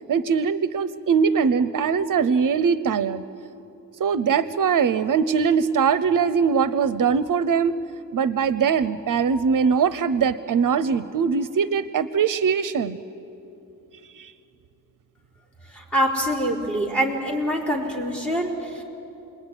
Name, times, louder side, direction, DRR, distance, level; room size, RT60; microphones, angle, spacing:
voice 1, 0.1-3.2 4.0-7.8 8.1-13.0 14.2-14.3, right 6 dB, 65° right, 15 dB, 0.7 m, -21 dB
voice 2, 15.7-18.8, equal, 5° left, 1 dB, 4.6 m, -25 dB
28.5 x 21.5 x 9.8 m, 2.9 s
wide cardioid pair, 120°, 34 cm